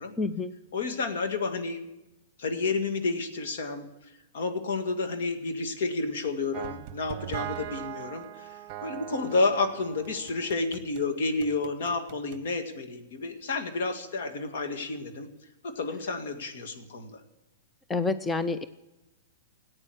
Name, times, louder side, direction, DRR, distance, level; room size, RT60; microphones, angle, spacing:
voice 1, 0.2-0.5 17.9-18.7, left 3 dB, 10° left, 11 dB, 0.5 m, -28 dB
voice 2, 0.7-1.8 2.4-3.8 4.3-15.3 15.6-17.2, left 3 dB, 70° left, 6 dB, 2.0 m, -30 dB
sound 1, 6.5-11.0 11.4-12.4, right 13 dB, 40° right, 0.9 m, -40 dB
15.0 x 8.9 x 7.8 m, 0.98 s
hypercardioid pair, 140°, 0 cm